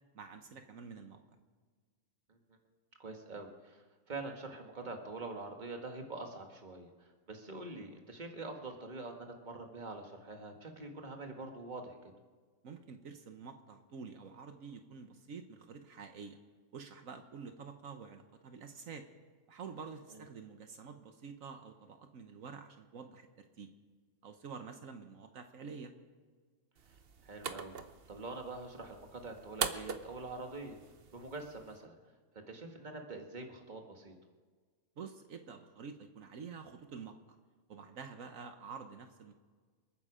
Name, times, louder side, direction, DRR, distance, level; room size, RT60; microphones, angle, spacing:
voice 1, 0.1-1.2 12.6-16.4 16.7-19.0 19.5-23.7 24.2-25.9 35.0-37.2 37.7-39.3, right 5 dB, 75° right, 6 dB, 1.4 m, -48 dB
voice 2, 3.0-12.0 20.1-20.2 26.9-27.0 27.2-27.8 28.1-30.8 31.1-31.9 32.5-34.1, right 3 dB, 35° right, 3 dB, 1.8 m, -45 dB
sound 1, 26.8-31.8, right 6 dB, 50° right, 1.0 m, -43 dB
28.5 x 9.6 x 5.0 m, 1.5 s
omnidirectional pair, 1.4 m